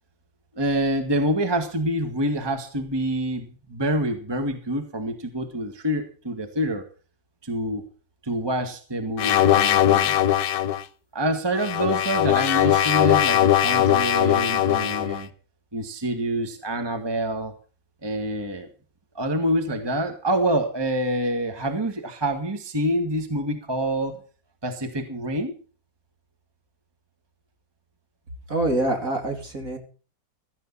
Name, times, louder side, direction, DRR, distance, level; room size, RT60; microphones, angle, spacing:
voice 1, 0.6-6.8 7.4-7.8 8.2-10.2 11.1-15.3 15.7-17.5 18.0-18.7 19.2-24.2 24.6-25.6, right 1 dB, 15° right, 6 dB, 1.8 m, -26 dB
sound 1, 9.2-10.8 11.6-15.2, left 11 dB, 75° left, 1.5 m, -20 dB
voice 2, 28.5-29.8, right 1 dB, 45° right, 4 dB, 3.3 m, -25 dB
16.0 x 13.5 x 4.2 m, 0.38 s
omnidirectional pair, 2.0 m